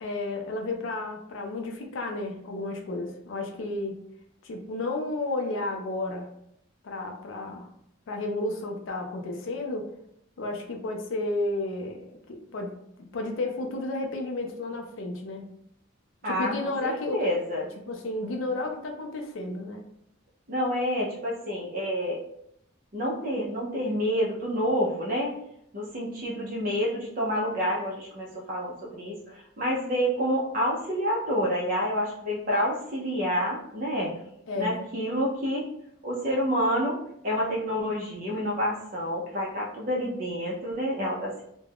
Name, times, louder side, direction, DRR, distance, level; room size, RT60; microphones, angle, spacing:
voice 1, 0.0-4.0 4.4-6.3 6.8-7.7 8.1-9.9 10.4-12.7 13.0-15.5 16.2-17.2 17.9-19.8 34.5-34.8, left 2 dB, 70° left, 3 dB, 0.4 m, -32 dB
voice 2, 16.2-17.7 20.5-22.2 22.9-25.3 25.7-34.2 34.5-35.7 36.0-41.4, equal, 40° right, -3 dB, 0.5 m, -28 dB
2.3 x 2.1 x 3.4 m, 0.74 s
head